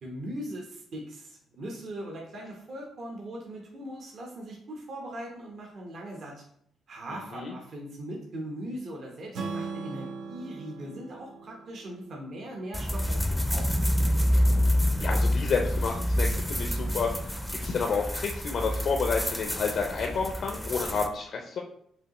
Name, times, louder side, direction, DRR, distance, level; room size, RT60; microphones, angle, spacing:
voice 1, 0.0-6.4 6.9-14.3, right 1 dB, 55° right, -1 dB, 0.9 m, -40 dB
voice 2, 7.1-7.5 15.0-21.6, left 5 dB, 60° left, 2 dB, 0.5 m, -30 dB
Strum, 9.3-13.5, right 4 dB, 75° right, 0.6 m, -40 dB
sound 1, 12.7-21.1, equal, ahead, 0.5 m, -27 dB
5.3 x 2.8 x 3.0 m, 0.69 s
cardioid pair, 90°, 0 cm